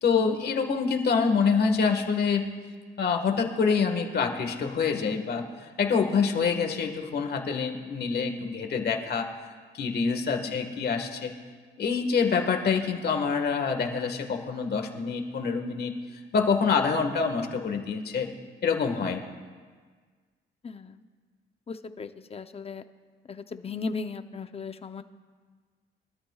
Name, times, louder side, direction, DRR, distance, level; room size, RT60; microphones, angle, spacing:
voice 1, 0.0-2.6 3.0-9.3 9.7-11.3 11.8-15.9 16.3-18.3 18.6-19.2, left 5 dB, 55° left, 5 dB, 1.7 m, -26 dB
voice 2, 20.6-21.0 21.7-22.8 23.3-25.0, left 4 dB, 30° left, 9 dB, 0.7 m, -37 dB
23.5 x 13.0 x 2.4 m, 1.6 s
cardioid pair, 90°, 20 cm